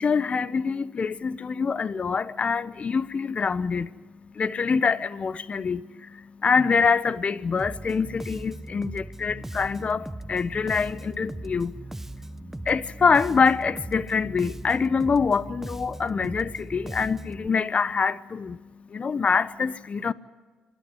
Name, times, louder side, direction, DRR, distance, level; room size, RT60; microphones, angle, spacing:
voice 1, 0.0-3.9 4.3-20.1, left 5 dB, 40° left, 0.9 m, -25 dB
Bass guitar, 7.6-17.5, right 2 dB, 10° right, 0.6 m, -39 dB
27.0 x 12.5 x 9.9 m
supercardioid pair, 55°, 3 cm